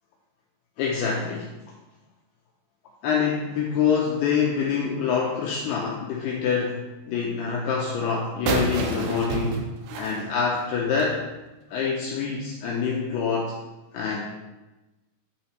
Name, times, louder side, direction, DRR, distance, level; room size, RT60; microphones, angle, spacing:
voice 1, 0.8-1.5 3.0-9.6 10.0-11.2 11.7-13.6 13.9-14.2, left 6 dB, 90° left, -2 dB, 2.3 m, -26 dB
sound 1, 8.5-11.2, right 3 dB, 85° right, 3.5 m, -29 dB
8.5 x 7.2 x 3.1 m, 1.1 s
omnidirectional pair, 5.5 m